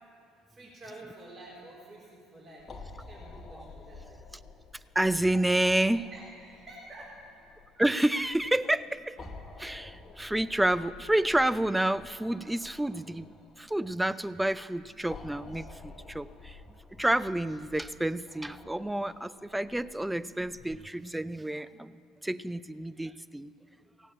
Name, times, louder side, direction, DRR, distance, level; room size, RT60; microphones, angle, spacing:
voice 1, 0.5-4.2 6.1-7.3, right 1 dB, 40° right, -5 dB, 4.0 m, -49 dB
sound 1, 2.6-20.8, left 3 dB, 30° left, 1.3 m, -51 dB
voice 2, 5.0-6.1 7.8-9.2 9.6-13.3 13.6-16.6 17.0-23.5, right 1 dB, 5° right, 15 dB, 0.5 m, -29 dB
17.0 x 8.2 x 8.8 m, 2.5 s
hypercardioid pair, 70°, 0 cm